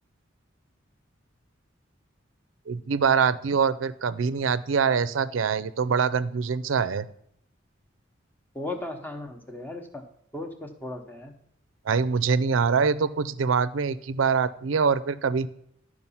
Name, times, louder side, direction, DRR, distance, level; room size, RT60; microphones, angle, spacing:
voice 1, 2.7-7.1 11.9-15.5, right 5 dB, 85° right, 16 dB, 0.5 m, -24 dB
voice 2, 8.5-10.0 10.3-11.4, left 2 dB, 10° left, 4 dB, 0.9 m, -36 dB
11.0 x 4.9 x 5.6 m, 0.70 s
head